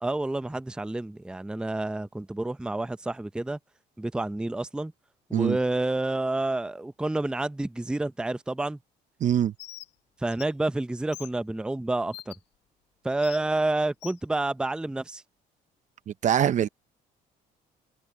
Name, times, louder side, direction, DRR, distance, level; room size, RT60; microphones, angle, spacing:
voice 1, 0.0-3.6 4.0-4.9 5.3-8.8 10.2-12.3 13.0-15.2, right 2 dB, 5° right, 0.6 m, -29 dB
voice 2, 9.2-9.5 16.1-16.7, right 10 dB, 45° right, 0.6 m, -23 dB
Bird, 9.6-9.9 10.3-10.5 11.1-11.3 12.1-12.4 13.2-13.4 14.0-14.2, left 16 dB, 85° left, 1.0 m, -42 dB
cardioid pair, 110°, 17 cm